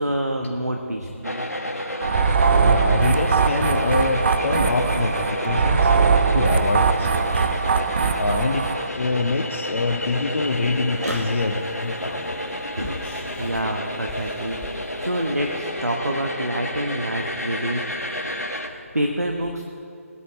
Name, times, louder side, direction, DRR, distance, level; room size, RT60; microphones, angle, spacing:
voice 1, 0.0-1.4 11.0-11.2 12.8-17.8 18.6-19.6, right 1 dB, 85° right, 3 dB, 1.0 m, -27 dB
sound 1, 1.2-18.7, left 1 dB, 90° left, 1.3 m, -30 dB
sound 2, 2.0-8.9, right 5 dB, 45° right, 0.5 m, -20 dB
voice 2, 2.4-5.9 6.3-7.6 8.2-8.6 8.9-12.3, left 3 dB, 55° left, 2 dB, 0.8 m, -25 dB
sound 3, 10.4-15.6, left 3 dB, 10° left, 1.1 m, -44 dB
19.5 x 8.5 x 4.6 m, 2.6 s
figure-of-eight pair, 150°, 8 cm